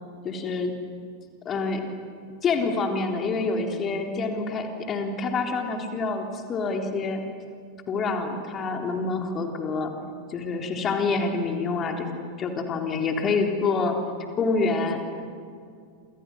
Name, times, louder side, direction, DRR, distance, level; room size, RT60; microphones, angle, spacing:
voice 1, 0.2-0.7 1.4-1.8 2.4-7.2 7.9-9.9 10.3-12.1 12.4-14.0 14.4-15.0, left 4 dB, 25° left, 4 dB, 3.5 m, -27 dB
28.0 x 27.5 x 6.3 m, 2.3 s
figure-of-eight pair, 90°, 0 cm